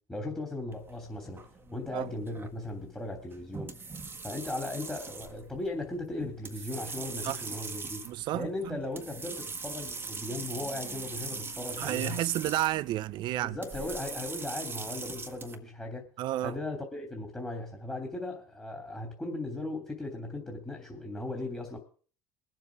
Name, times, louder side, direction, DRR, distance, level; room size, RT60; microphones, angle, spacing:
voice 1, 0.1-3.7 4.2-8.0 8.3-12.2 13.4-16.1 16.4-21.8, left 2 dB, 10° left, 3.1 m, -37 dB
sound 1, 0.7-15.5, right 4 dB, 25° right, 1.6 m, -41 dB
voice 2, 8.0-8.8 11.8-13.6 16.2-16.5, right 15 dB, 60° right, 0.7 m, -31 dB
21.5 x 7.5 x 4.9 m
hypercardioid pair, 80°, 9 cm